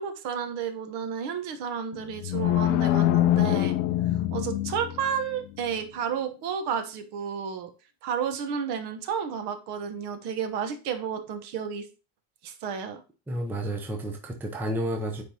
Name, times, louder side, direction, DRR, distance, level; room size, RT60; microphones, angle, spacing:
voice 1, 0.0-3.8 4.3-7.7 8.0-11.9 12.4-13.0, right 7 dB, 50° right, 7 dB, 1.1 m, -31 dB
sound 1, 1.9-5.2, left 13 dB, 60° left, 0.7 m, -24 dB
voice 2, 13.3-15.2, right 1 dB, 5° right, 3 dB, 0.6 m, -31 dB
9.6 x 3.5 x 2.8 m, 0.33 s
cardioid pair, 140°, 50 cm